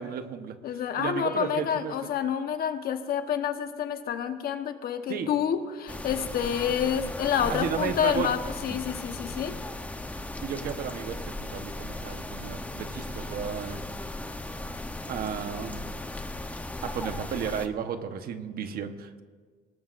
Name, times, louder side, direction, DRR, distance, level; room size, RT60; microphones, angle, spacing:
voice 1, 0.0-2.0 5.1-5.3 7.5-8.3 10.4-13.8 15.1-15.9 16.8-19.2, right 7 dB, 65° right, 8 dB, 1.2 m, -33 dB
voice 2, 0.6-9.6, left 8 dB, 60° left, 7 dB, 1.2 m, -28 dB
sound 1, 5.9-17.7, left 2 dB, 10° left, 0.9 m, -37 dB
24.5 x 18.5 x 2.6 m, 1.5 s
cardioid pair, 110°, 17 cm